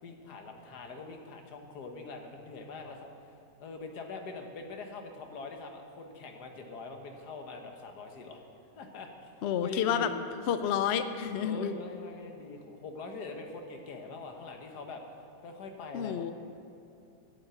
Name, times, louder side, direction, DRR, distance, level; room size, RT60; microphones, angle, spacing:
voice 1, 0.0-3.3 3.6-8.4 8.8-9.3 9.6-10.1 11.4-15.0 15.4-16.3, left 3 dB, 85° left, 4 dB, 1.7 m, -43 dB
voice 2, 9.4-10.1 10.5-11.7 15.9-16.3, left 8 dB, 65° left, 10 dB, 0.6 m, -29 dB
8.8 x 8.6 x 8.0 m, 2.7 s
omnidirectional pair, 1.7 m